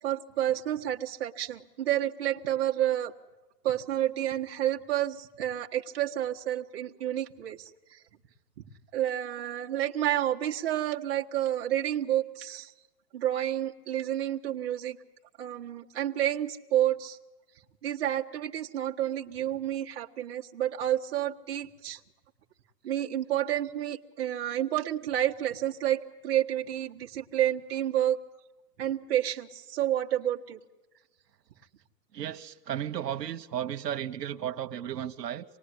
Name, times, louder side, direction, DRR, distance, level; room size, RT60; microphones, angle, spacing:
voice 1, 0.0-3.1 3.6-8.0 8.6-8.7 8.9-12.7 13.1-15.0 15.4-17.2 17.8-22.0 22.8-28.2 28.8-30.6, right 12 dB, 40° right, 1.5 m, -30 dB
voice 2, 32.1-35.4, right 10 dB, 80° right, 1.4 m, -34 dB
27.0 x 19.5 x 9.8 m
hypercardioid pair, 165°, 48 cm